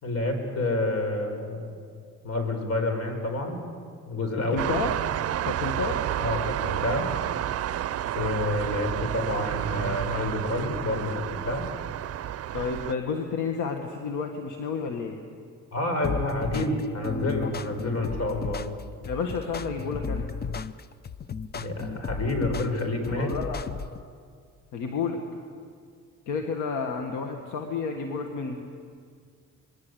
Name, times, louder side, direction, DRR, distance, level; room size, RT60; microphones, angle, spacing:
voice 1, 0.0-1.8 2.2-3.6 4.1-4.7 5.8-5.9 6.2-7.1 8.2-11.7 15.7-18.6 21.5-23.3, left 2 dB, 55° left, 5 dB, 5.4 m, -28 dB
voice 2, 4.5-4.9 5.4-6.0 12.5-15.2 19.0-20.3 23.2-23.6 24.7-25.2 26.3-28.6, left 5 dB, 80° left, 4 dB, 1.9 m, -30 dB
sound 1, 4.6-12.9, right 11 dB, 55° right, 0.6 m, -30 dB
sound 2, 16.0-24.0, left 5 dB, 35° left, 0.7 m, -34 dB
26.0 x 21.0 x 8.2 m, 2.1 s
cardioid pair, 90°, 30 cm